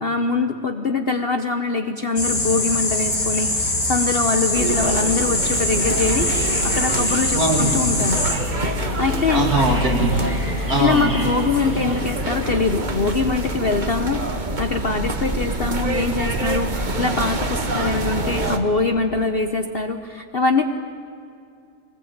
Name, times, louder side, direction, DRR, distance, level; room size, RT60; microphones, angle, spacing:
voice 1, 0.0-8.2 9.0-9.5 10.8-20.7, left 3 dB, 40° left, 7 dB, 0.9 m, -23 dB
sound 1, 2.2-8.4, left 2 dB, 60° left, 4.0 m, -23 dB
sound 2, 4.5-18.6, right 1 dB, 30° right, 1.5 m, -26 dB
sound 3, 5.6-12.5, equal, 5° right, 3.5 m, -37 dB
voice 2, 7.3-7.8 9.3-10.2 10.6-11.1, right 2 dB, 60° right, 1 dB, 3.4 m, -21 dB
23.0 x 20.5 x 8.8 m, 2.4 s
omnidirectional pair, 1.8 m